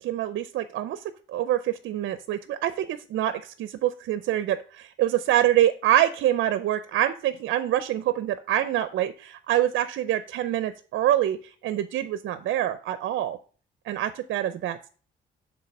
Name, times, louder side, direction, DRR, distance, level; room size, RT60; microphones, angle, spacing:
voice 1, 0.0-1.0 1.3-11.4 11.6-13.4 13.9-14.9, right 12 dB, 75° right, 13 dB, 0.6 m, -25 dB
7.6 x 3.7 x 5.8 m, 0.40 s
cardioid pair, 90°, 20 cm